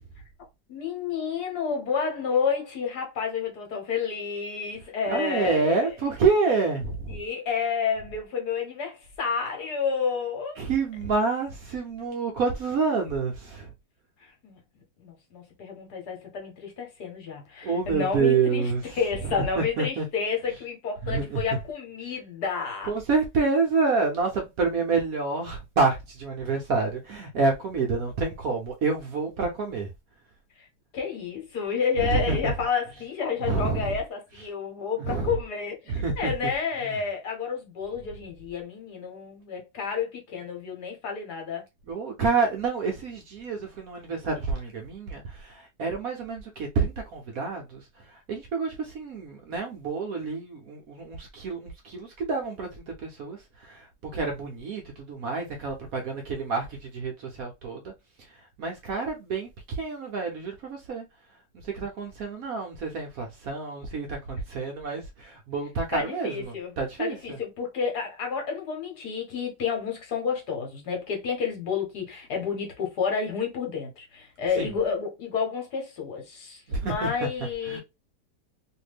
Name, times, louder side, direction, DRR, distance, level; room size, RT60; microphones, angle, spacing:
voice 1, 0.7-5.8 7.1-10.6 14.2-14.6 15.0-22.9 30.6-30.7 30.9-41.6 65.9-66.7 67.0-77.8, left 6 dB, 70° left, 1.5 m, -30 dB
voice 2, 5.1-7.2 10.6-13.7 17.6-18.8 19.6-20.1 21.0-21.4 22.9-29.9 32.0-32.5 33.4-33.9 35.0-35.3 35.9-36.3 41.9-57.9 58.6-61.0 61.6-67.4 74.6-74.7 76.7-77.1 77.7-77.8, right 4 dB, 65° right, 1.0 m, -28 dB
2.9 x 2.6 x 3.1 m
omnidirectional pair, 1.9 m